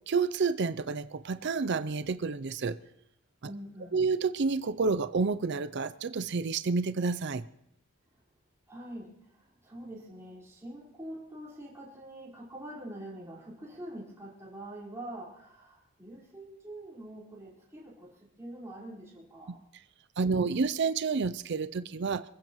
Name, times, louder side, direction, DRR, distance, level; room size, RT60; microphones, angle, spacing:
voice 1, 0.1-2.8 3.9-7.4 20.2-22.2, right 4 dB, 50° right, 13 dB, 0.5 m, -29 dB
voice 2, 3.4-4.1 8.1-8.2 8.7-19.6, right 1 dB, 15° right, -6 dB, 4.8 m, -45 dB
27.5 x 15.5 x 3.1 m, 0.78 s
head